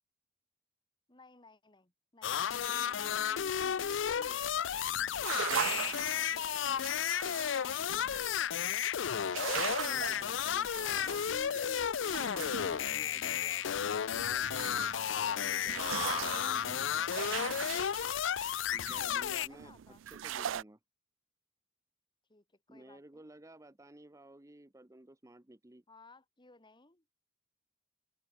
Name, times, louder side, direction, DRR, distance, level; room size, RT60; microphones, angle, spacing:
voice 1, 1.1-3.2 5.7-6.9 7.2-8.5 15.0-15.3 19.2-20.0 22.3-23.3 25.9-27.1, left 3 dB, 25° left, 1.9 m, -60 dB
sound 1, 2.2-19.5, left 9 dB, 70° left, 0.5 m, -33 dB
voice 2, 2.7-4.4 9.5-13.7 14.1-17.9 18.7-19.7 20.1-20.8 22.7-25.8, right 1 dB, 15° right, 0.9 m, -54 dB
sound 2, 4.4-8.7 9.0-20.6, right 9 dB, 80° right, 0.4 m, -40 dB
head